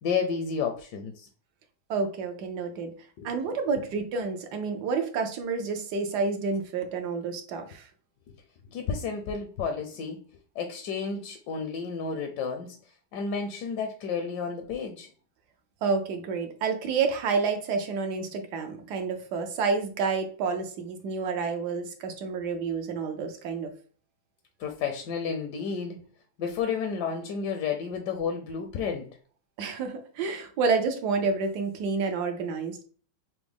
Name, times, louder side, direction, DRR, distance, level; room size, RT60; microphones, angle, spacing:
voice 1, 0.0-1.3 3.2-3.3 8.7-10.2 10.6-12.8 13.1-15.1 24.6-26.0 26.4-29.1, left 6 dB, 70° left, 5 dB, 1.0 m, -31 dB
voice 2, 1.9-2.9 3.2-7.9 15.8-23.7 29.6-32.8, right 4 dB, 70° right, 6 dB, 1.1 m, -29 dB
5.9 x 2.1 x 3.4 m, 0.43 s
omnidirectional pair, 2.2 m